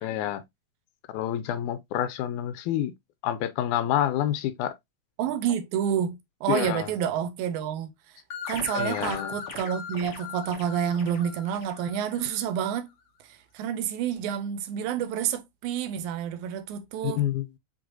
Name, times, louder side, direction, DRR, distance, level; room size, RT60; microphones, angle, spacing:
voice 1, 0.0-0.4 1.1-2.9 3.2-4.7 6.5-6.9 8.7-9.4 17.0-17.5, left 11 dB, 85° left, 2.0 m, -28 dB
voice 2, 5.2-7.9 8.5-12.9 13.2-17.2, right 9 dB, 90° right, 2.1 m, -29 dB
sound 1, 8.3-12.6, left 6 dB, 60° left, 1.5 m, -39 dB
6.2 x 3.2 x 2.4 m
omnidirectional pair, 3.5 m